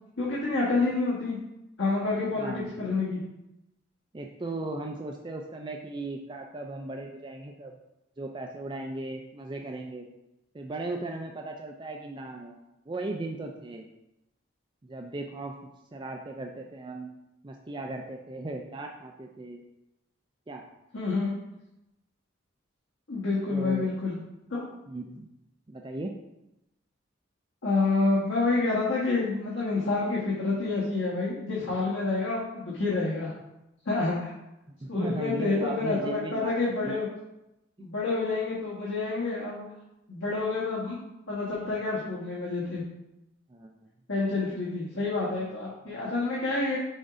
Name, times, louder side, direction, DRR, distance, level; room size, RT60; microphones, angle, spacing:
voice 1, 0.2-1.4 1.8-3.2 20.9-21.3 23.1-24.2 24.5-24.6 27.6-33.3 33.8-34.3 34.9-37.1 37.8-39.6 40.1-41.0 41.3-42.8 44.1-46.8, left 3 dB, 85° left, -6 dB, 1.5 m, -28 dB
voice 2, 2.4-2.8 4.1-7.8 8.2-10.0 10.5-12.6 12.9-13.9 14.8-15.6 15.9-17.2 17.4-19.6 20.5-20.6 23.5-23.9 24.9-25.3 25.7-26.1 34.8-37.0 37.8-37.9 43.5-43.8 45.9-46.4, right 2 dB, 25° right, 2 dB, 0.4 m, -37 dB
6.3 x 3.7 x 4.9 m, 0.91 s
head